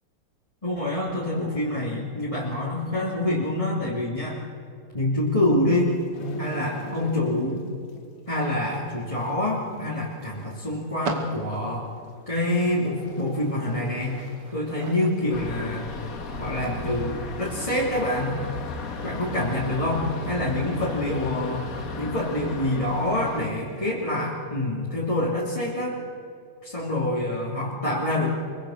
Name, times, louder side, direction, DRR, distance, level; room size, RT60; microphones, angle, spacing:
voice 1, 0.6-4.4 4.9-6.0 6.4-7.6 8.3-11.9 12.3-14.2 14.5-15.9 16.4-18.4 19.0-21.6 22.0-26.0 26.6-28.3, left 1 dB, 15° left, -6 dB, 3.0 m, -26 dB
sound 1, 5.9-7.6 7.9-8.2 8.7-8.8 9.7-9.8 10.0-10.1 11.0-11.2 12.3-12.7 13.0-14.6 14.9-15.1 15.6-16.1 16.5-16.6 16.8-16.9 17.3-17.4 18.4-18.5 18.7-19.0 19.3-19.4 19.8-21.5 21.8-21.9, right 1 dB, 85° left, 2.6 m, -39 dB
sound 2, 8.3-19.8, right 3 dB, 85° right, 3.1 m, -42 dB
sound 3, 15.3-23.5, left 3 dB, 45° left, 1.8 m, -35 dB
24.0 x 23.5 x 6.6 m, 2.4 s
omnidirectional pair, 2.4 m